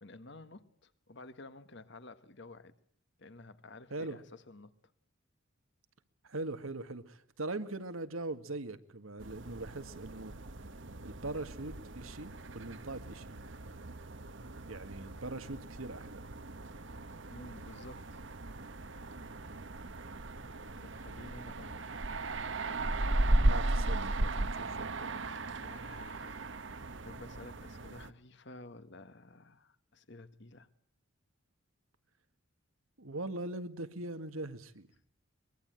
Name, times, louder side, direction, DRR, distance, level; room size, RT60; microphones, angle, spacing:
voice 1, 0.0-2.8 3.2-4.7 16.8-17.0 17.3-18.2 20.8-21.8 25.6-26.5 27.0-30.7, left 2 dB, 55° left, 1.6 m, -52 dB
voice 2, 6.2-10.3 11.0-13.3 14.7-16.2 23.5-25.1 33.0-34.9, right 2 dB, 85° right, 1.9 m, -41 dB
sound 1, 9.2-28.1, right 2 dB, 60° right, 1.2 m, -36 dB
23.5 x 22.0 x 9.0 m
head